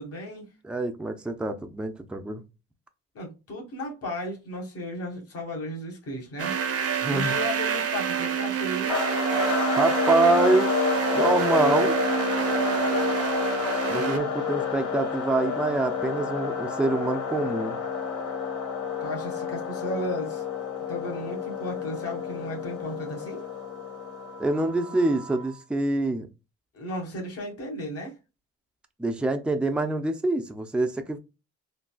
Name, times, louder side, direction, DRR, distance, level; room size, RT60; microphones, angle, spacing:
voice 1, 0.0-0.5 3.1-6.6 7.0-8.9 19.0-20.4 20.9-23.4 26.7-28.1, left 1 dB, 50° left, 1.5 m, -34 dB
voice 2, 0.6-2.4 7.0-7.4 9.8-10.7 11.1-12.0 13.9-17.8 24.4-26.3 29.0-31.2, right 2 dB, 5° right, 0.4 m, -25 dB
sound 1, 6.4-14.2, right 8 dB, 50° right, 0.7 m, -27 dB
sound 2, 8.9-25.6, left 6 dB, 75° left, 1.4 m, -29 dB
3.9 x 2.3 x 2.2 m
cardioid pair, 90°, 30 cm